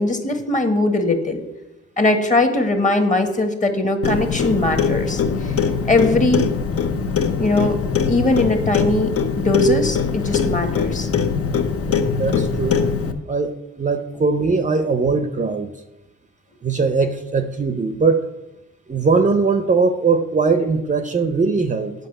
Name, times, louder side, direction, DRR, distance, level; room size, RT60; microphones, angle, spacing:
voice 1, 0.0-1.4 2.0-6.5 7.4-7.8 8.1-11.1, left 2 dB, 25° left, 6 dB, 1.4 m, -20 dB
Clock, 4.0-13.1, left 6 dB, 50° left, 0.9 m, -22 dB
voice 2, 11.9-12.8 13.3-15.7 16.6-18.3 18.9-21.9, right 4 dB, 25° right, 8 dB, 0.6 m, -20 dB
8.0 x 5.2 x 6.6 m, 0.92 s
cardioid pair, 90°, 30 cm